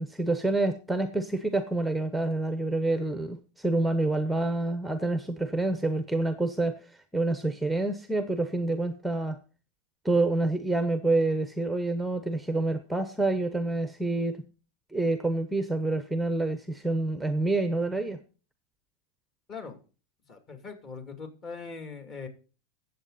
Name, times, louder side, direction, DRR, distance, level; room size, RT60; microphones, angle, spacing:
voice 1, 0.0-6.8 7.1-9.4 10.0-14.4 14.9-18.2, right 2 dB, ahead, 9 dB, 0.9 m, -27 dB
voice 2, 19.5-19.8 20.3-22.3, left 5 dB, 35° left, 6 dB, 2.8 m, -41 dB
16.0 x 7.7 x 4.2 m, 0.37 s
supercardioid pair, 140°, 0 cm